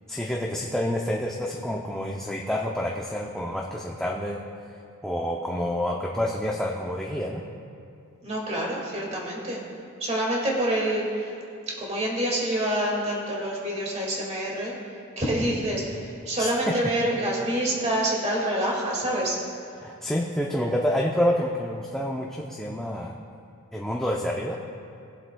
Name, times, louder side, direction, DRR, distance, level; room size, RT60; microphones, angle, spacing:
voice 1, 0.1-4.4 5.0-7.4 16.4-16.5 19.8-23.2 23.7-24.6, equal, ahead, -2 dB, 0.5 m, -28 dB
voice 2, 8.2-9.6 10.0-11.4 11.8-14.7 15.2-19.4, right 1 dB, 30° right, -3 dB, 2.0 m, -27 dB
19.5 x 7.7 x 2.3 m, 2.5 s
head